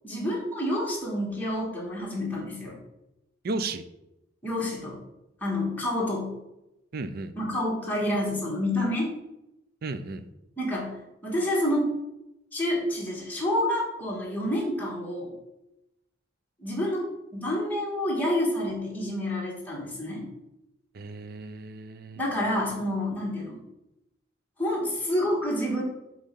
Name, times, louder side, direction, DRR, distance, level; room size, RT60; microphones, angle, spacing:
voice 1, 0.0-2.8 4.4-5.0 5.4-6.3 7.4-9.1 10.6-10.9 11.2-11.9 12.5-15.3 16.6-17.0 17.3-20.3 22.2-23.6 24.6-25.8, left 1 dB, 10° left, -4 dB, 1.7 m, -28 dB
voice 2, 3.4-3.8 6.9-7.3 9.8-10.3 20.9-22.2, right 3 dB, 50° right, 11 dB, 0.5 m, -34 dB
7.4 x 3.2 x 5.4 m, 0.89 s
head